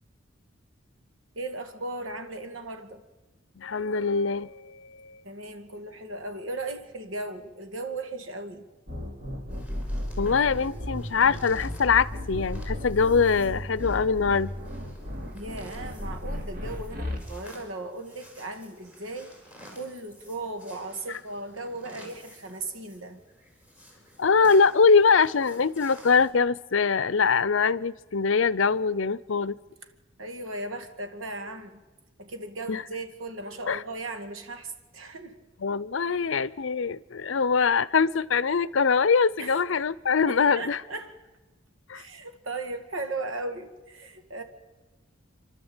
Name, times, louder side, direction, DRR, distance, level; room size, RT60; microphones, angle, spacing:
voice 1, 1.4-3.0 5.2-8.7 15.3-19.3 19.7-23.2 30.2-31.8 32.2-35.4 39.4-39.6 40.3-41.1 41.9-44.4, right 2 dB, 80° right, 2.2 m, -37 dB
voice 2, 3.6-5.2 10.2-14.5 24.2-29.6 32.7-32.8 33.7-33.8 35.6-40.8 41.9-42.0, left 5 dB, 70° left, 0.6 m, -23 dB
sound 1, 8.9-17.2, left 1 dB, 45° right, 3.1 m, -34 dB
sound 2, 9.5-26.3, equal, 5° right, 4.7 m, -53 dB
28.0 x 12.5 x 8.9 m
head